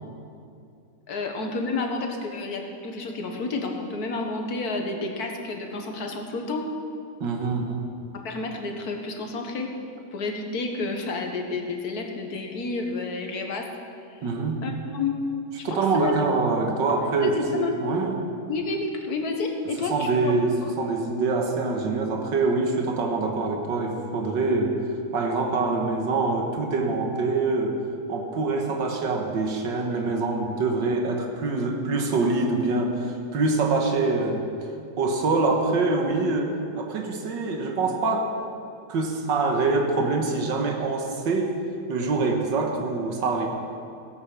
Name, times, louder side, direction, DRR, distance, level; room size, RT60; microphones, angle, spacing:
voice 1, 1.1-6.7 8.1-9.7 10.1-13.7 14.1-14.2 14.6-15.2 15.6-16.2 17.2-17.7 18.5-20.4 20.6-20.7, left 3 dB, 60° left, 3 dB, 1.8 m, -30 dB
voice 2, 7.2-7.9 14.2-14.6 15.6-18.2 19.9-24.8 25.1-27.8 28.1-34.5 35.0-38.3 38.9-41.5 41.9-43.5, right 3 dB, 80° right, 2 dB, 2.0 m, -25 dB
17.0 x 8.6 x 6.0 m, 2.6 s
omnidirectional pair, 1.9 m